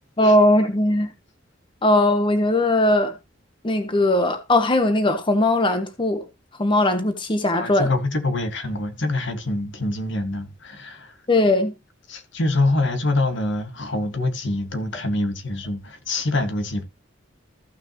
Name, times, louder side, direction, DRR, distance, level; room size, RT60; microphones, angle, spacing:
voice 1, 0.2-1.1 1.8-3.1 3.6-6.3 6.6-7.9 11.3-11.7, left 1 dB, 25° left, 0.9 m, -19 dB
voice 2, 7.5-11.1 12.1-16.8, left 2 dB, 65° left, 1.7 m, -25 dB
14.5 x 6.2 x 2.9 m
head